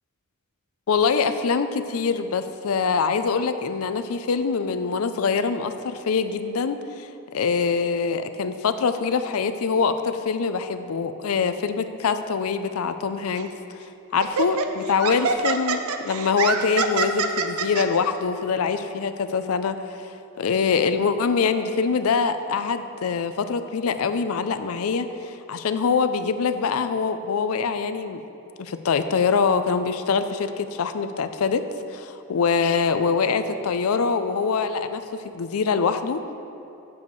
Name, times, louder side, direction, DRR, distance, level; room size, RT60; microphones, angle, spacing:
voice 1, 0.9-28.2 28.6-36.2, left 5 dB, 75° left, 10 dB, 0.4 m, -24 dB
Laughter, 13.4-13.6 14.2-17.9, right 5 dB, 90° right, 0.5 m, -25 dB
10.5 x 7.1 x 3.1 m, 2.9 s
head